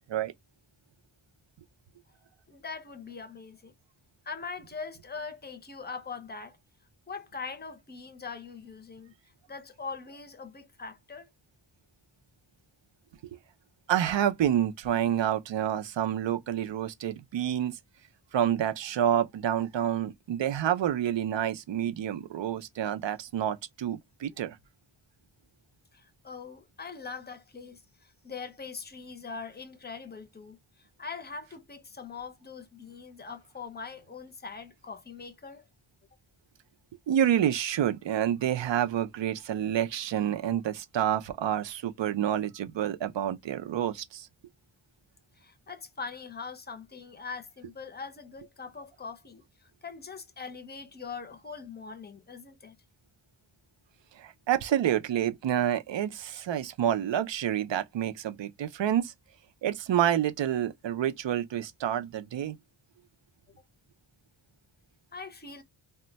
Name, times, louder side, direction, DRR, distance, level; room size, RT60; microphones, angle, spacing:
voice 1, 2.5-3.7 4.2-6.6 7.1-9.1 9.5-11.3 25.9-35.7 45.4-49.4 49.8-52.8 65.1-65.6, left 5 dB, 20° left, 0.5 m, -42 dB
voice 2, 13.9-17.8 18.3-24.6 37.1-44.3 54.2-59.1 59.6-62.6, right 10 dB, 75° right, 0.5 m, -28 dB
2.2 x 2.1 x 3.8 m
wide cardioid pair, 115°, 45 cm